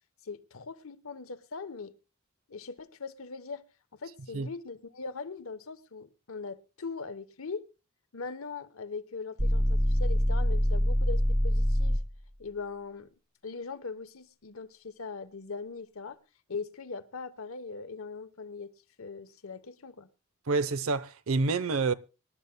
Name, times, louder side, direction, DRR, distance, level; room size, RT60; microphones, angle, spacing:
voice 1, 0.2-1.9 2.5-3.6 3.9-7.7 8.1-12.0 12.4-13.1 13.4-16.2 16.5-18.7 19.0-20.1, left 4 dB, 80° left, 1.0 m, -40 dB
sound 1, 9.4-12.2, equal, 10° right, 0.9 m, -25 dB
voice 2, 20.5-21.9, right 4 dB, 85° right, 0.7 m, -28 dB
25.0 x 11.5 x 2.2 m
head